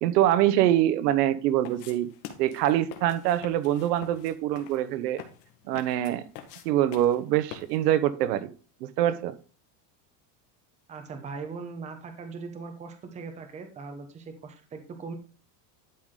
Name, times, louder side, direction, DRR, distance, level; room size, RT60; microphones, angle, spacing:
voice 1, 0.0-2.1 2.4-5.2 5.7-6.2 6.6-8.5 8.8-9.4, right 12 dB, 80° right, 1.0 m, -24 dB
sound 1, 1.6-8.0, left 10 dB, 85° left, 1.9 m, -46 dB
voice 2, 10.9-15.1, right 4 dB, 15° right, 0.9 m, -40 dB
11.5 x 4.8 x 3.8 m
supercardioid pair, 170°, 48 cm